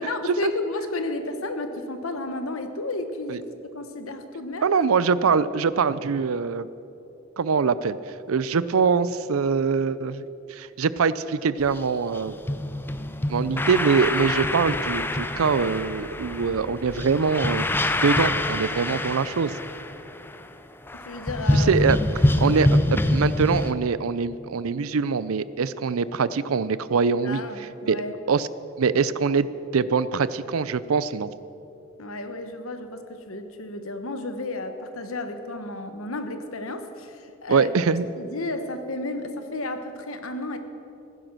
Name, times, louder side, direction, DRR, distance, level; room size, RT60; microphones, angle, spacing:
voice 1, 0.0-5.3 21.1-21.7 27.2-28.1 32.0-37.7 38.2-40.6, left 2 dB, 85° left, 8 dB, 1.2 m, -33 dB
voice 2, 4.6-6.7 7.4-8.0 8.3-10.2 10.5-12.4 13.3-17.7 18.0-19.6 21.5-22.0 22.4-27.4 27.9-28.0 28.3-28.5 28.8-29.5 29.7-31.3 37.5-38.1, right 5 dB, 90° right, 16 dB, 0.5 m, -23 dB
sound 1, 11.6-11.8 12.1-20.5 20.9-23.7, left 1 dB, 10° left, 0.4 m, -25 dB
16.0 x 10.0 x 6.2 m, 2.8 s
head